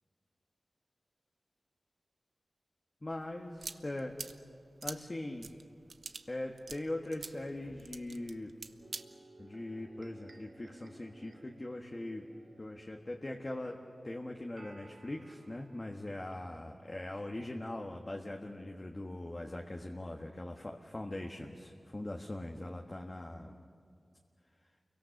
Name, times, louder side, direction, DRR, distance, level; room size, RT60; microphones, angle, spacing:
voice 1, 3.0-4.1 4.8-5.5 6.3-8.5 9.4-12.3 12.6-13.8 14.0-23.6, left 1 dB, 35° left, 1 dB, 1.5 m, -41 dB
sound 1, 3.1-9.0, right 4 dB, 85° right, 0.7 m, -47 dB
sound 2, 8.8-16.9, right 2 dB, 55° right, 1.3 m, -59 dB
29.5 x 23.0 x 6.5 m, 2.2 s
wide cardioid pair, 75°, 0 cm